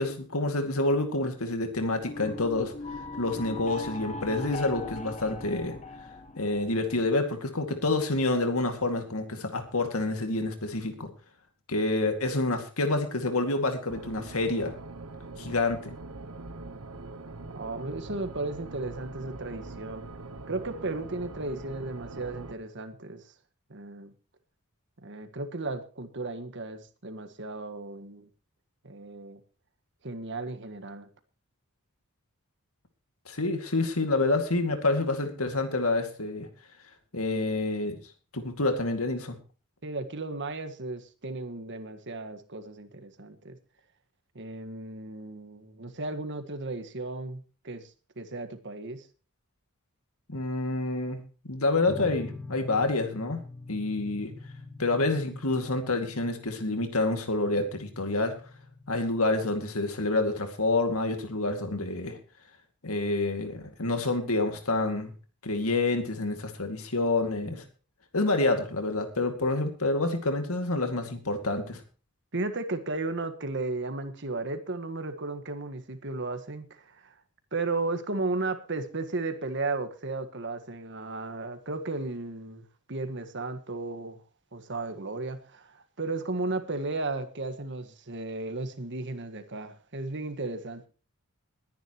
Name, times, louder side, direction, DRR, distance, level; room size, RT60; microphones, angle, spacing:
voice 1, 0.0-2.7 3.2-5.8 6.4-11.1 11.7-14.7 15.4-15.9 33.3-36.5 37.1-38.0 38.3-39.4 50.3-51.2 51.5-53.4 53.7-54.3 54.8-58.4 58.9-62.2 62.8-65.1 65.4-67.6 68.1-71.8, left 2 dB, 70° left, 2.3 m, -28 dB
sound 1, 2.0-7.1, left 2 dB, 30° left, 1.2 m, -40 dB
sound 2, 13.9-22.5, right 3 dB, 75° right, 1.2 m, -42 dB
voice 2, 17.5-20.1 20.5-23.3 23.7-24.1 25.0-28.3 28.8-29.4 30.0-31.1 39.8-43.6 44.3-49.1 72.3-77.1 77.5-84.2 84.5-90.9, right 3 dB, 55° right, 1.7 m, -35 dB
sound 3, 51.9-59.5, left 3 dB, 5° left, 2.4 m, -45 dB
21.0 x 10.5 x 3.1 m
head